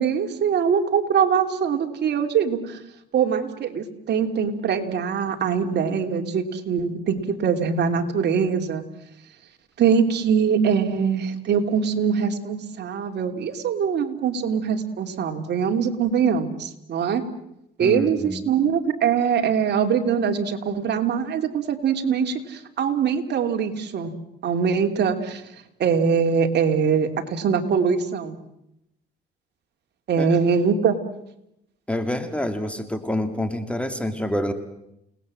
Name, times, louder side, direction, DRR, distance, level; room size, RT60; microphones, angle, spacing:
voice 1, 0.0-2.8 3.1-8.8 9.8-17.2 17.8-24.1 24.4-25.4 25.8-28.4 30.1-31.0, right 6 dB, 60° right, 5 dB, 2.9 m, -23 dB
voice 2, 17.8-18.4 30.2-30.3 31.9-34.5, left 1 dB, 5° left, 8 dB, 2.5 m, -27 dB
29.0 x 19.5 x 7.7 m, 0.82 s
cardioid pair, 105°, 19 cm